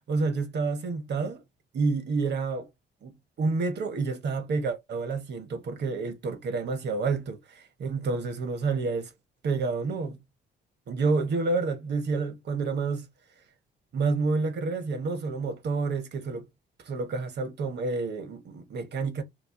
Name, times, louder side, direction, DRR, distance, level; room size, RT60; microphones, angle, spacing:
voice 1, 0.1-1.4 1.7-2.7 3.0-9.1 9.4-10.2 10.9-13.1 13.9-16.5 16.8-19.2, right 4 dB, 60° right, 1.0 m, -29 dB
3.0 x 2.3 x 3.6 m
cardioid pair, 90°, 20 cm